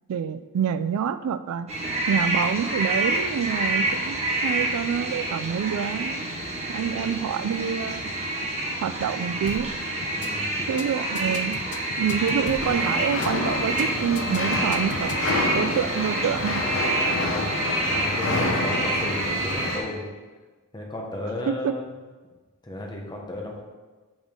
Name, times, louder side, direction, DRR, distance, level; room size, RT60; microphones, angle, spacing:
voice 1, 0.1-1.7 2.1-6.2 6.7-8.1 8.8-9.7 10.7-11.6 12.0-16.6 21.5-21.7, right 7 dB, 80° right, 12 dB, 0.3 m, -27 dB
sound 1, 1.7-19.8, right 2 dB, 30° right, 1.1 m, -28 dB
sound 2, 9.5-9.7 10.0-10.3 10.6-10.8 11.1-12.7 13.0-13.3 13.6-13.8 14.1-15.5, left 4 dB, 85° left, 0.5 m, -38 dB
voice 2, 10.1-10.5 17.1-17.5 17.8-20.1 20.7-21.9 22.6-23.6, left 1 dB, 20° left, 0 dB, 1.0 m, -34 dB
sound 3, 12.6-19.8, left 2 dB, 65° left, 0.9 m, -28 dB
7.0 x 5.0 x 3.7 m, 1.3 s
head